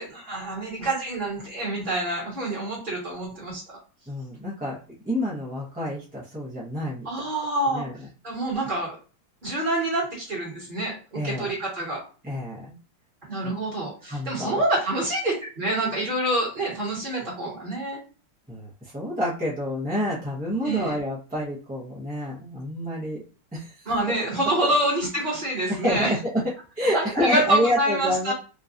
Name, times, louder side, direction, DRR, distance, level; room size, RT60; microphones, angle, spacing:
voice 1, 0.0-3.8 7.0-7.9 8.2-8.9 9.4-12.0 13.3-18.0 20.6-20.9 23.8-26.1 26.9-28.3, right 1 dB, 25° right, -5 dB, 1.6 m, -27 dB
voice 2, 4.1-4.8 5.0-7.1 7.7-8.1 11.1-11.5 12.2-12.7 13.4-13.5 14.0-14.6 18.5-23.2 23.5-23.9 24.6-24.7 25.7-26.4 26.8-28.3, equal, 10° right, -6 dB, 0.4 m, -28 dB
3.8 x 2.8 x 2.5 m, 0.36 s
omnidirectional pair, 2.3 m